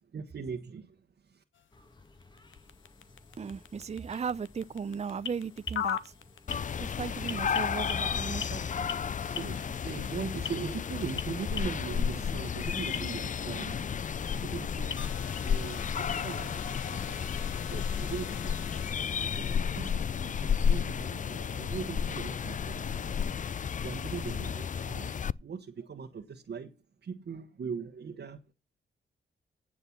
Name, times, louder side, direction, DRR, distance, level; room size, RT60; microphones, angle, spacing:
voice 1, 0.1-1.0 1.3-1.4 9.2-15.1 15.4-17.1 17.7-18.5 19.3-25.1 25.4-26.7 27.0-28.5, right 6 dB, 55° right, 1.3 m, -40 dB
sound 1, 1.5-18.9, left 8 dB, 70° left, 1.0 m, -43 dB
sound 2, 1.7-21.3, left 3 dB, 20° left, 1.8 m, -57 dB
voice 2, 3.4-6.1 6.8-8.7, right 6 dB, 30° right, 0.6 m, -36 dB
sound 3, 6.5-25.3, left 7 dB, 40° left, 0.5 m, -32 dB
9.8 x 7.9 x 5.9 m
supercardioid pair, 55°, 21 cm